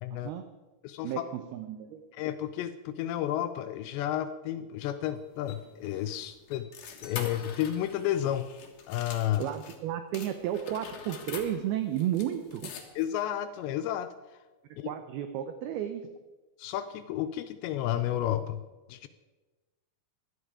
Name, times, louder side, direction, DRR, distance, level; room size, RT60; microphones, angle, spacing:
voice 1, 0.1-0.5 1.0-2.1 9.4-12.7 14.8-16.0, right 11 dB, 75° right, 8 dB, 2.4 m, -33 dB
voice 2, 0.8-1.3 2.1-6.7 7.0-8.5 8.9-9.5 13.0-14.1 14.8-14.9 16.6-18.6 18.9-19.1, left 12 dB, 85° left, 10 dB, 2.8 m, -31 dB
sound 1, 5.0-9.8 10.1-13.2, left 6 dB, 60° left, 2.7 m, -45 dB
16.5 x 12.0 x 4.8 m, 1.2 s
omnidirectional pair, 5.1 m